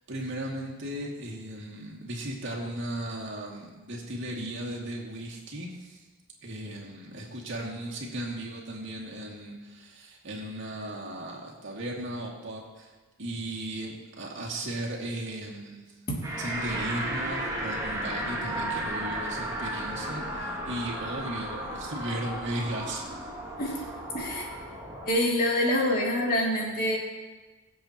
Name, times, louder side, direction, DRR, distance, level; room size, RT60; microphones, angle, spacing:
voice 1, 0.1-6.0 6.4-12.9 13.2-15.8 16.4-23.1, right 1 dB, 60° right, -3 dB, 2.4 m, -36 dB
sound 1, 16.2-25.1, right 1 dB, 15° right, 2.2 m, -34 dB
voice 2, 24.1-24.5 25.0-27.0, left 1 dB, 45° left, -3 dB, 2.6 m, -26 dB
23.5 x 7.8 x 3.0 m, 1.2 s
head